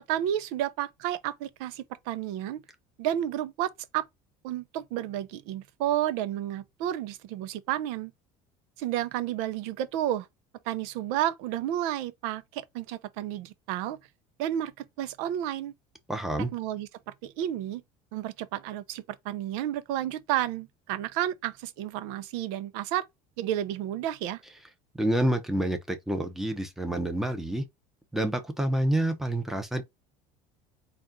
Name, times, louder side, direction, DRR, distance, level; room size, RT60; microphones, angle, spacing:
voice 1, 0.1-2.6 3.0-4.0 4.4-8.1 8.8-10.3 10.7-14.0 14.4-15.7 16.5-17.8 18.1-23.1 23.4-24.4, right 12 dB, 75° right, 0.6 m, -31 dB
voice 2, 16.1-16.5 25.0-27.6 28.1-29.8, right 1 dB, ahead, 0.8 m, -28 dB
4.2 x 2.5 x 3.7 m
cardioid pair, 135°, 14 cm